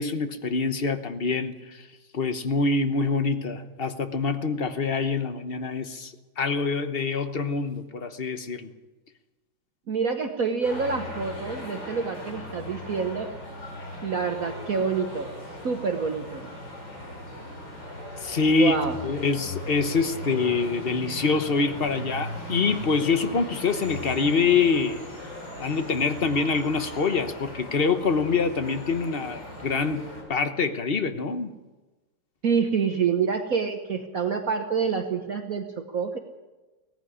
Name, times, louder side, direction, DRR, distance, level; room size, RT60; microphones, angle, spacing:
voice 1, 0.0-1.9 2.1-8.7 18.2-18.8 19.0-25.0 25.6-31.5, left 4 dB, 35° left, 9 dB, 1.0 m, -25 dB
voice 2, 9.9-13.3 14.0-15.3 15.6-16.5 18.5-19.0 32.4-36.2, right 5 dB, 50° right, 5 dB, 1.4 m, -27 dB
sound 1, 10.6-30.2, left 1 dB, 65° left, 6.3 m, -38 dB
18.0 x 14.5 x 10.0 m, 1.2 s
omnidirectional pair, 2.1 m